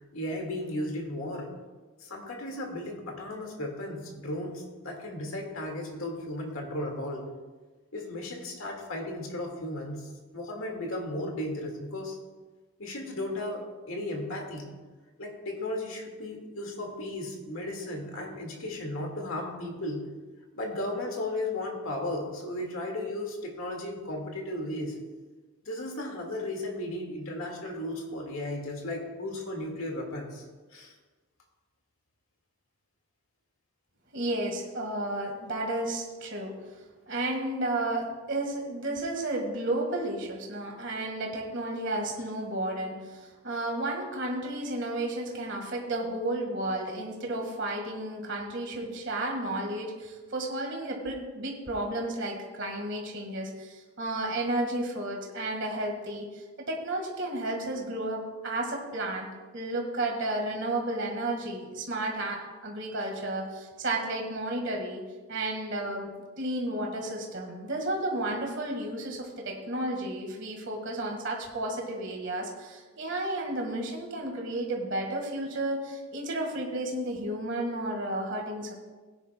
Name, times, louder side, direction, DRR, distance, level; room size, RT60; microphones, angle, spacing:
voice 1, 0.1-1.5 2.0-7.3 7.9-12.2 12.8-14.7 15.2-20.1 20.5-25.0 25.6-30.4 30.7-30.9, left 1 dB, 70° left, 2 dB, 1.9 m, -35 dB
voice 2, 34.1-36.5 37.1-59.3 59.5-65.0 65.3-78.7, right 1 dB, 55° right, 1 dB, 1.6 m, -32 dB
17.5 x 9.9 x 2.2 m, 1.3 s
head